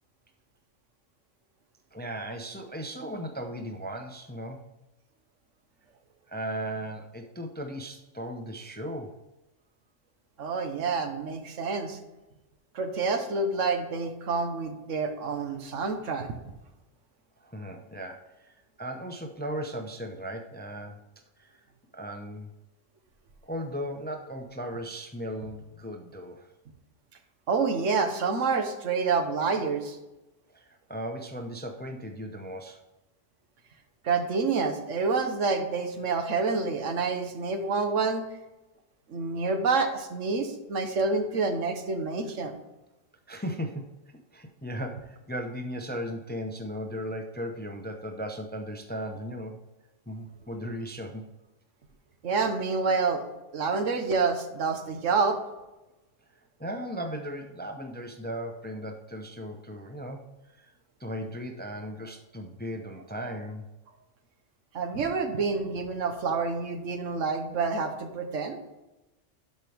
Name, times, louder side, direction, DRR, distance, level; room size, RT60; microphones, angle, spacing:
voice 1, 1.9-4.7 6.3-9.2 17.4-21.0 21.4-21.6 21.9-22.5 23.4-26.5 30.5-32.8 43.3-44.0 44.3-49.6 50.1-51.2 56.6-63.6, equal, 15° left, 5 dB, 0.4 m, -37 dB
voice 2, 10.4-12.0 12.7-16.3 27.5-30.0 34.0-38.2 39.1-42.6 52.2-53.2 53.5-55.4 64.7-68.6, right 4 dB, 90° right, 6 dB, 1.4 m, -28 dB
12.0 x 5.4 x 3.4 m, 1.0 s
omnidirectional pair, 1.3 m